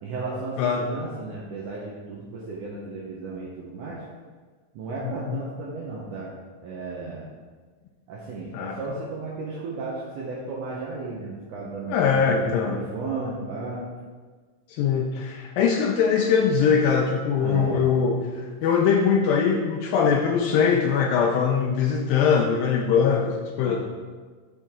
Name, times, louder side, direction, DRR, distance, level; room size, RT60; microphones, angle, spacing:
voice 1, 0.0-4.0 4.7-6.3 6.6-7.3 8.1-13.8 17.4-17.8 23.6-23.8, right 3 dB, 70° right, -5 dB, 2.3 m, -34 dB
voice 2, 5.0-5.4 8.5-8.8 11.9-12.8 14.7-23.8, left 6 dB, 80° left, 1 dB, 2.4 m, -22 dB
12.0 x 5.2 x 3.7 m, 1.5 s
omnidirectional pair, 4.1 m